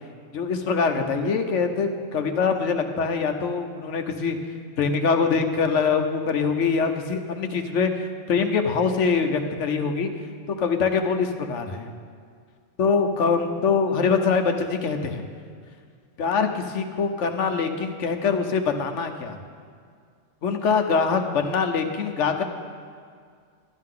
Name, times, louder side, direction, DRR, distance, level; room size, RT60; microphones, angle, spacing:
voice 1, 0.3-4.4 4.8-10.1 10.5-11.9 12.8-15.2 16.2-19.4 20.4-22.4, left 5 dB, 70° left, 6 dB, 1.2 m, -24 dB
12.0 x 11.0 x 3.8 m, 2.1 s
omnidirectional pair, 1.3 m